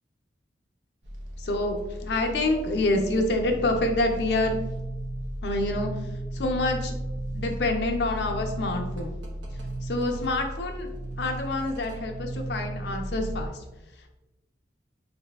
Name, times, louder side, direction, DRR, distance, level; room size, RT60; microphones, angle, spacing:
sound 1, 1.0-13.5, right 1 dB, 80° right, 0.6 m, -35 dB
voice 1, 1.4-4.6 5.4-6.9 7.3-9.2 9.5-10.9 11.2-13.6, left 2 dB, 70° left, 3 dB, 0.5 m, -27 dB
4.0 x 2.5 x 2.3 m, 1.0 s
head